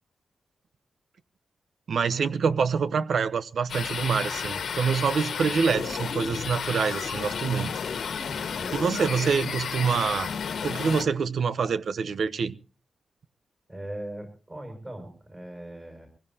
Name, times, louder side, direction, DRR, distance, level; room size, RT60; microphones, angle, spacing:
voice 1, 1.9-7.7 8.7-10.3 10.6-12.5, right 6 dB, 70° right, 0.9 m, -26 dB
sound 1, 3.7-11.0, left 6 dB, 85° left, 1.5 m, -32 dB
voice 2, 8.6-9.2 13.7-16.1, right 1 dB, 25° right, 6.2 m, -40 dB
24.0 x 16.0 x 2.8 m
wide cardioid pair, 130°, 0 cm